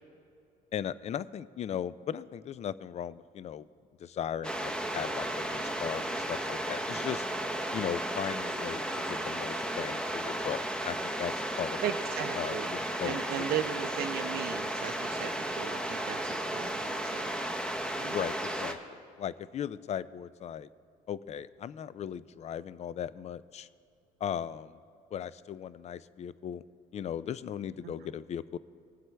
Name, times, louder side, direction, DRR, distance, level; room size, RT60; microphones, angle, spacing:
voice 1, 0.7-3.7 4.0-7.3 7.7-11.9 12.4-13.5 18.1-20.7 21.1-23.7 24.2-24.8 25.1-26.6 26.9-28.6, left 9 dB, 40° left, 17 dB, 0.4 m, -37 dB
sound 1, 4.4-18.7, right 1 dB, 5° left, 0.9 m, -34 dB
voice 2, 11.8-12.7 13.0-17.2 18.0-18.1 27.8-27.9, right 10 dB, 65° right, 6 dB, 0.5 m, -37 dB
19.5 x 7.6 x 3.4 m, 2.5 s
cardioid pair, 90°, 17 cm